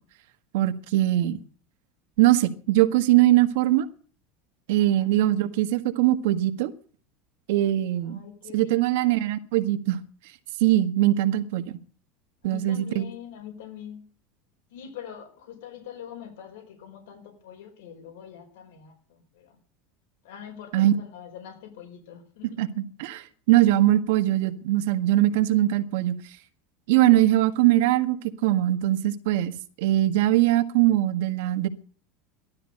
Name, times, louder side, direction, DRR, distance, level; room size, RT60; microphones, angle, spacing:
voice 1, 0.5-1.4 2.2-3.9 4.7-6.7 7.5-8.2 8.5-10.0 10.6-11.8 12.4-13.0 20.7-20.9 22.6-26.2 26.9-31.7, right 14 dB, 75° right, 9 dB, 1.6 m, -21 dB
voice 2, 8.0-9.1 12.4-14.1 14.7-19.6 20.2-22.7, left 9 dB, 80° left, 3 dB, 4.5 m, -43 dB
16.0 x 12.5 x 6.6 m, 0.43 s
supercardioid pair, 160°, 0 cm